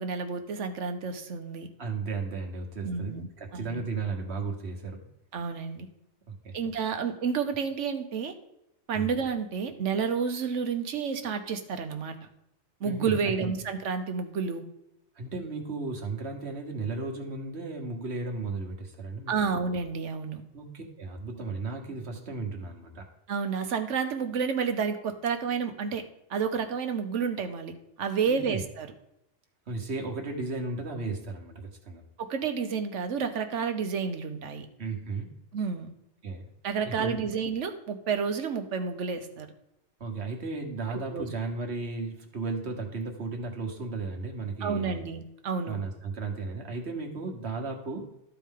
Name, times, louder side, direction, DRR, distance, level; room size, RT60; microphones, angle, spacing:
voice 1, 0.0-1.7 2.8-3.3 3.5-3.8 5.3-5.9 6.5-8.3 8.9-12.2 12.8-14.6 19.3-20.4 23.3-26.0 26.3-28.9 32.2-34.7 35.5-35.9 36.6-39.5 40.9-41.3 44.6-45.8, right 6 dB, 85° right, 7 dB, 1.2 m, -30 dB
voice 2, 1.8-5.0 6.3-6.5 8.9-9.1 12.8-13.5 15.1-19.5 20.5-23.1 28.3-28.6 29.7-32.0 34.8-35.3 36.2-36.4 36.8-37.2 40.0-45.0 45.7-48.1, right 3 dB, 65° right, 2 dB, 1.6 m, -35 dB
13.0 x 4.6 x 3.7 m, 0.82 s
omnidirectional pair, 1.2 m